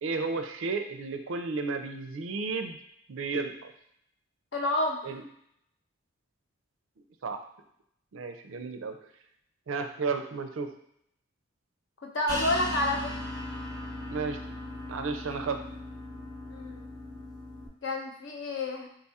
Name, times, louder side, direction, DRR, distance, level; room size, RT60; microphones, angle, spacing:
voice 1, 0.0-2.8 3.1-3.7 5.0-5.2 7.2-7.4 8.1-9.0 9.7-10.7 14.1-14.4 14.9-15.6, right 4 dB, 80° right, 6 dB, 0.4 m, -32 dB
voice 2, 4.5-5.0 12.0-13.1 16.5-16.8 17.8-18.9, left 1 dB, 65° left, 1 dB, 0.7 m, -29 dB
sound 1, 12.3-17.7, left 1 dB, 20° left, 0.7 m, -38 dB
3.9 x 2.4 x 4.1 m, 0.72 s
head